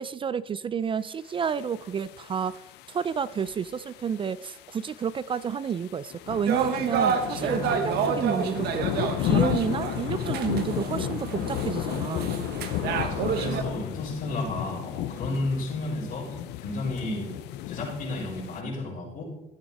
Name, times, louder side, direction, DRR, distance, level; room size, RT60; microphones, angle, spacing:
voice 1, 0.0-2.5 2.9-12.4, right 7 dB, 30° right, 17 dB, 0.3 m, -30 dB
sound 1, 1.4-18.6, left 12 dB, 85° left, 0.6 m, -33 dB
sound 2, 6.5-13.6, right 6 dB, 70° right, 1.2 m, -29 dB
voice 2, 13.0-16.4 16.6-17.3 17.7-19.2, left 2 dB, 55° left, -5 dB, 4.4 m, -32 dB
14.5 x 7.9 x 4.1 m, 0.92 s
cardioid pair, 110°, 17 cm